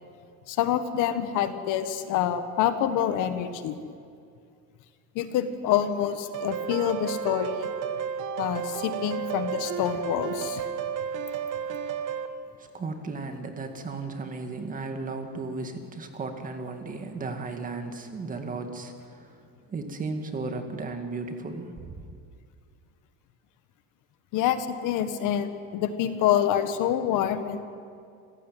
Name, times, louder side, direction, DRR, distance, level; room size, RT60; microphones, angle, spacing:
voice 1, 0.5-3.8 5.1-7.7 8.4-10.6 24.3-27.6, left 10 dB, 60° left, 10 dB, 1.6 m, -27 dB
sound 1, 6.3-12.3, right 7 dB, 60° right, 1.6 m, -32 dB
voice 2, 12.6-22.1, right 3 dB, 25° right, 5 dB, 2.0 m, -35 dB
27.0 x 16.0 x 9.3 m, 2.3 s
cardioid pair, 170°, 34 cm